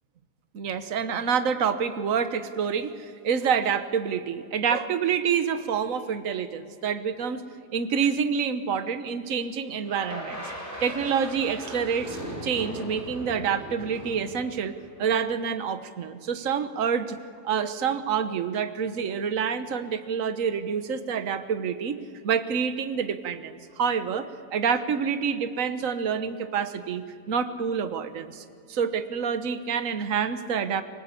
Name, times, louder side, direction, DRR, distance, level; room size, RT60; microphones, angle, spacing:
voice 1, 0.5-7.4 7.7-10.4 10.8-14.7 15.0-17.2 17.4-22.0 22.2-30.8, right 7 dB, 55° right, 10 dB, 1.5 m, -27 dB
sound 1, 9.9-15.2, equal, 10° right, 5.8 m, -38 dB
24.0 x 20.0 x 8.4 m, 2.4 s
omnidirectional pair, 1.7 m